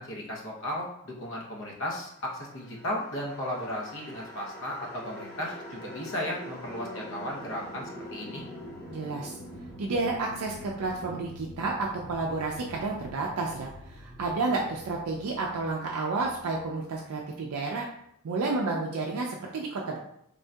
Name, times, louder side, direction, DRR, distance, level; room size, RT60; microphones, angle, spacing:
voice 1, 0.0-8.4, left 1 dB, 55° left, -3 dB, 0.8 m, -35 dB
sound 1, 2.2-17.4, left 1 dB, 35° left, 1.0 m, -45 dB
voice 2, 8.9-9.4 9.8-17.9 18.2-20.0, right 3 dB, 75° right, -1 dB, 0.4 m, -31 dB
3.6 x 2.6 x 2.2 m, 0.76 s
head